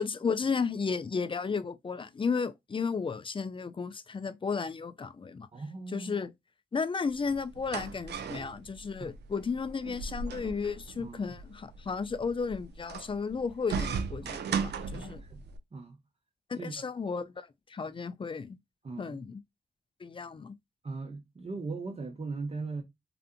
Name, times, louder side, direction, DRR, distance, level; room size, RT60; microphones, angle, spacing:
voice 1, 0.0-5.5 5.9-6.3 6.7-15.2 16.5-18.6 19.0-19.4 20.0-20.5, left 5 dB, 30° left, 0.4 m, -33 dB
voice 2, 5.5-6.1 8.3-8.4 9.0-9.1 11.0-11.2 14.2-15.4 15.7-16.0 16.6-16.8 18.8-19.2 20.8-22.8, right 3 dB, 35° right, 0.7 m, -39 dB
sound 1, 7.1-15.6, right 5 dB, 70° right, 0.4 m, -37 dB
2.5 x 2.5 x 2.4 m
supercardioid pair, 45°, 18 cm